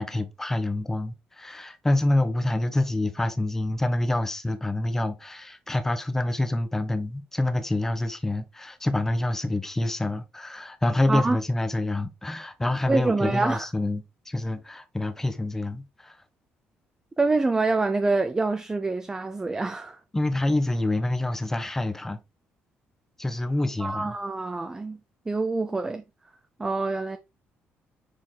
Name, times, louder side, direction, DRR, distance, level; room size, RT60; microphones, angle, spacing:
voice 1, 0.0-16.2 20.1-22.2 23.2-24.1, left 1 dB, 10° left, 0.9 m, -27 dB
voice 2, 12.9-13.7 17.2-20.0 23.8-25.0 25.3-26.0 26.6-27.2, right 3 dB, 15° right, 0.5 m, -26 dB
6.5 x 4.7 x 3.8 m
cardioid pair, 155°, 4 cm